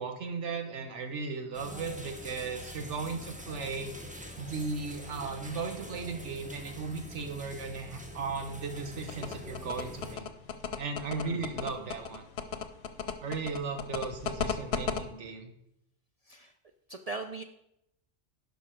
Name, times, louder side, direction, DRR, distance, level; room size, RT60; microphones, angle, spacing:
voice 1, 0.0-3.9 4.4-10.2 10.8-12.2 13.2-15.5, right 4 dB, 75° right, 6 dB, 1.4 m, -36 dB
sound 1, 1.5-10.2, equal, 5° right, 0.8 m, -45 dB
sound 2, 9.1-15.0, left 7 dB, 65° left, 0.9 m, -34 dB
voice 2, 11.0-11.4 11.8-11.9 13.3-13.4 16.3-16.5 16.9-17.4, right 3 dB, 55° right, 6 dB, 0.4 m, -41 dB
11.0 x 5.3 x 4.5 m, 0.79 s
omnidirectional pair, 1.2 m